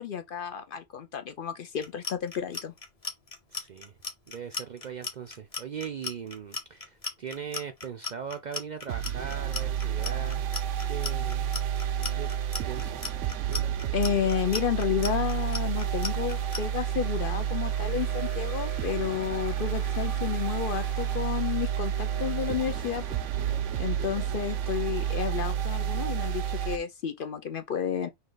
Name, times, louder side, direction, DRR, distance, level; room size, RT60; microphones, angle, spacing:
voice 1, 0.0-2.7 13.9-23.0 23.8-28.1, left 9 dB, 60° left, 0.6 m, -31 dB
Clock, 1.8-16.6, left 3 dB, 35° left, 1.0 m, -36 dB
voice 2, 3.5-3.9 4.3-10.5 10.9-11.5 12.1-12.3 12.6-13.1, right 7 dB, 55° right, 0.5 m, -39 dB
sound 1, 8.9-26.8, right 10 dB, 80° right, 0.9 m, -30 dB
sound 2, 15.2-24.4, left 3 dB, 85° left, 2.0 m, -52 dB
5.4 x 2.3 x 3.8 m
omnidirectional pair, 1.2 m